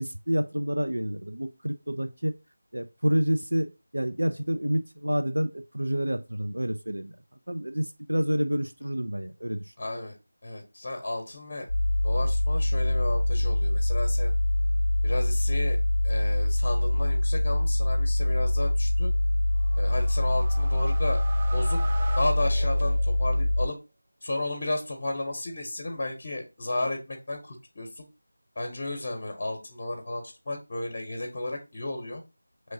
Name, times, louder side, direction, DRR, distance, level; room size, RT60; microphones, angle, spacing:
voice 1, 0.0-2.3 2.7-7.1 7.5-9.7, equal, 90° right, 0.4 m, -28 dB
voice 2, 9.8-10.1 10.4-11.7 12.0-14.3 15.0-15.8 16.0-19.1 19.7-21.2 21.5-21.8 22.1-23.8 24.2-28.1 28.6-32.2, left 2 dB, 35° left, 0.8 m, -33 dB
sound 1, 11.7-23.7, left 1 dB, 70° left, 0.4 m, -24 dB
sound 2, 19.6-23.4, right 3 dB, 30° right, 0.5 m, -40 dB
5.5 x 3.2 x 2.6 m
figure-of-eight pair, 170°, 0 cm